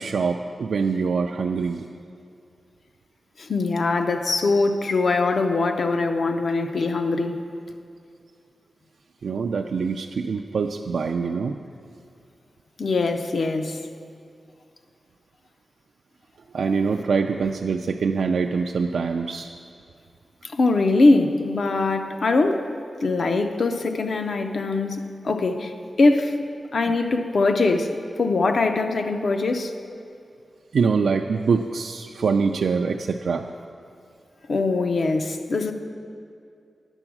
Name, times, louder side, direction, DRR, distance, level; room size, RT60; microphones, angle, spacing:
voice 1, 0.0-1.8 9.2-11.6 16.5-19.5 26.9-27.0 30.7-33.4, right 5 dB, 85° right, 3 dB, 0.3 m, -24 dB
voice 2, 3.4-7.4 12.8-13.8 20.5-22.7 23.0-25.7 26.0-26.3 26.7-27.9 28.2-29.7 34.5-35.7, left 3 dB, 55° left, 7 dB, 0.6 m, -22 dB
9.9 x 7.0 x 5.9 m, 2.4 s
wide cardioid pair, 165°, 0 cm